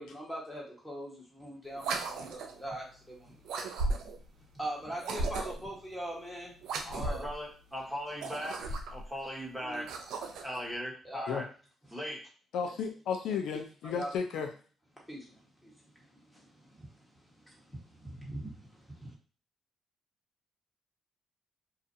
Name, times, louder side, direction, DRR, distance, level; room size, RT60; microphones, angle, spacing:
voice 1, 0.0-4.0 4.6-6.5 6.9-7.2 8.6-8.7 9.6-9.9 11.0-11.3 13.8-14.1 15.1-19.1, right 1 dB, 5° left, -3 dB, 1.3 m, -42 dB
sound 1, 1.8-2.6 3.5-4.3 5.0-5.7 6.6-7.3 8.1-9.1 9.7-10.6, right 3 dB, 80° right, 0.4 m, -35 dB
voice 2, 6.8-8.6 8.9-9.9 10.4-11.5 11.9-12.3, equal, 15° right, -4 dB, 1.1 m, -39 dB
voice 3, 12.5-14.5, left 6 dB, 80° left, 4 dB, 0.4 m, -33 dB
2.4 x 2.4 x 2.6 m, 0.39 s
cardioid pair, 90°, 0 cm